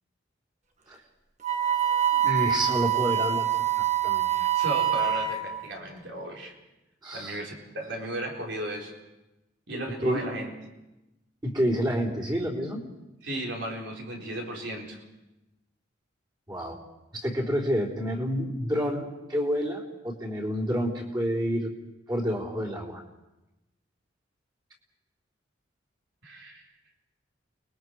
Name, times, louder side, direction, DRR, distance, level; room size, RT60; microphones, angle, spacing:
Wind instrument woodwind instrument, 1.4-5.6, right 10 dB, 35° right, 1.6 m, -25 dB
voice 1, 2.1-3.5 3.8-4.3 7.0-7.4 10.0-10.2 11.4-12.8 16.5-16.8 17.1-21.7 22.1-23.0, equal, 20° right, -5 dB, 3.6 m, -29 dB
voice 2, 4.3-6.5 7.1-8.9 9.7-10.5 13.2-15.0 26.2-26.7, right 1 dB, 70° right, -1 dB, 4.1 m, -35 dB
29.5 x 21.0 x 4.7 m, 0.97 s
head